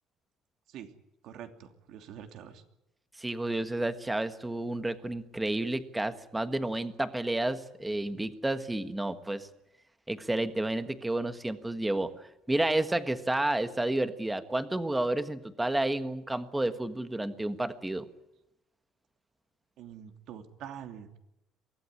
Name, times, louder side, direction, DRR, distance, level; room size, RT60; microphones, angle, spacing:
voice 1, 1.2-2.6 19.8-21.1, right 9 dB, 60° right, 7 dB, 2.9 m, -45 dB
voice 2, 3.2-9.5 10.1-12.1 12.5-18.0, right 1 dB, 10° right, 10 dB, 1.4 m, -31 dB
23.5 x 17.0 x 9.8 m, 0.88 s
cardioid pair, 155°, 0 cm